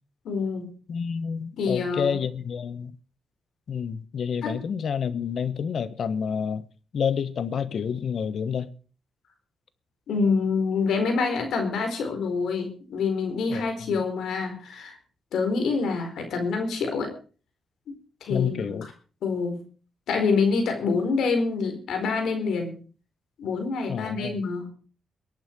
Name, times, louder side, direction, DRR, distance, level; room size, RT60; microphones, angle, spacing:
voice 1, 0.2-0.7 1.6-2.2 4.4-4.6 10.1-15.0 15.3-17.1 18.2-18.9 19.2-19.6 20.1-22.7 23.4-24.7, left 4 dB, 85° left, 4.4 m, -26 dB
voice 2, 0.9-2.9 3.7-6.6 6.9-8.7 13.5-14.0 18.3-18.9 23.9-24.4, left 7 dB, 65° left, 1.2 m, -29 dB
22.5 x 9.1 x 4.7 m
cardioid pair, 95°, 0 cm